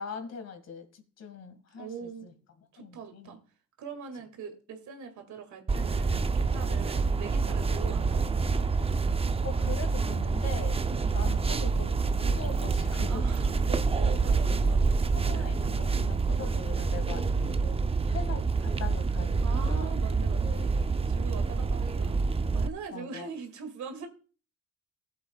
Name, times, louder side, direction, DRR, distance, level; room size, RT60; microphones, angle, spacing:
voice 1, 0.0-2.3 2.8-3.4 9.4-10.8 11.1-13.2 14.0-14.1 14.5-17.3 17.6-17.8 18.1-19.9 20.4-20.7 21.5-21.6 22.9-23.3, left 6 dB, 60° left, 7 dB, 2.0 m, -42 dB
voice 2, 1.7-2.3 2.7-3.4 3.8-8.4 10.8-11.2 13.1-15.0 15.3-15.5 16.4-16.6 17.1-17.6 19.4-22.2 22.5-24.1, right 5 dB, 75° right, 5 dB, 2.2 m, -42 dB
sound 1, 5.7-22.7, right 4 dB, 20° right, 0.5 m, -27 dB
15.0 x 7.6 x 2.3 m, 0.37 s
cardioid pair, 90°, 30 cm